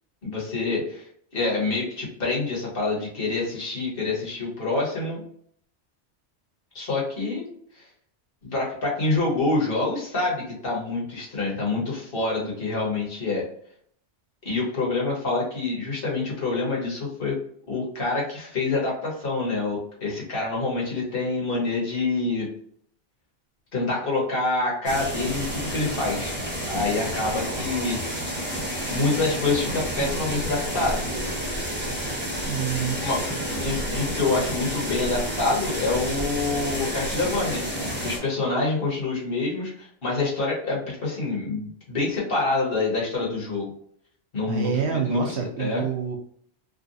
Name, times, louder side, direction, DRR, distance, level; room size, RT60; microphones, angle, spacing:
voice 1, 0.2-5.2 6.7-7.5 7.7-7.9 8.4-13.4 14.4-17.4 17.7-22.5 23.7-26.4 26.7-28.0 28.9-31.0 33.0-33.2 33.6-43.7 44.3-45.8, left 3 dB, 55° left, -4 dB, 1.5 m, -26 dB
sound 1, 24.8-38.2, equal, 10° right, 0.7 m, -30 dB
voice 2, 32.4-33.0 44.5-46.2, right 7 dB, 70° right, 3 dB, 0.8 m, -27 dB
3.6 x 2.3 x 2.5 m, 0.63 s
omnidirectional pair, 1.2 m